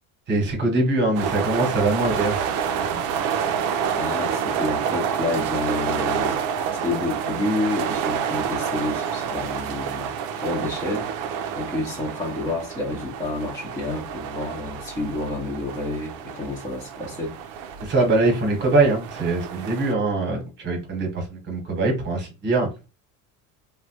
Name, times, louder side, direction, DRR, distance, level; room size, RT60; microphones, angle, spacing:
voice 1, 0.3-2.4 2.8-3.0 17.8-22.7, right 2 dB, 30° right, 1.1 m, -22 dB
sound 1, 1.1-19.9, right 7 dB, 55° right, 0.5 m, -28 dB
voice 2, 3.9-6.4 6.7-11.1 11.6-17.4, left 2 dB, 10° left, 0.7 m, -29 dB
3.0 x 2.2 x 2.8 m
cardioid pair, 140°, 38 cm